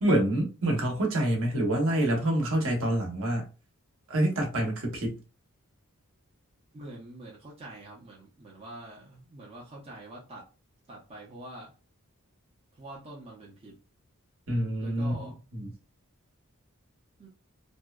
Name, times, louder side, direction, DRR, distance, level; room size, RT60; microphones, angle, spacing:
voice 1, 0.0-3.5 4.1-5.2 14.5-15.7, right 1 dB, 60° right, 0.8 m, -27 dB
voice 2, 6.7-10.5 10.9-11.7 12.7-13.8 14.8-15.4 17.2-17.3, right 1 dB, 25° right, 0.5 m, -45 dB
2.6 x 2.1 x 2.2 m
head